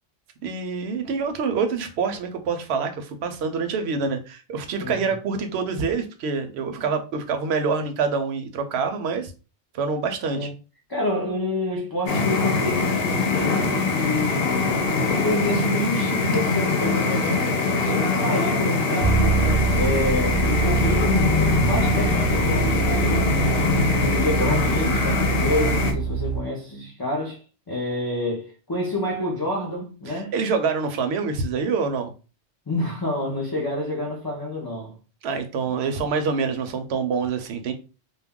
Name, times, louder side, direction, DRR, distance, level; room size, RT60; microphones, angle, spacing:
voice 1, 0.4-9.3 9.7-10.5 30.1-32.1 35.2-37.7, right 5 dB, 75° right, 0.8 m, -26 dB
voice 2, 10.9-30.3 32.7-34.9, left 1 dB, 35° left, 0.4 m, -28 dB
sound 1, 12.1-25.9, left 3 dB, 65° left, 0.8 m, -23 dB
sound 2, 19.0-26.4, right 6 dB, 45° right, 0.7 m, -25 dB
2.3 x 2.1 x 3.5 m
omnidirectional pair, 1.1 m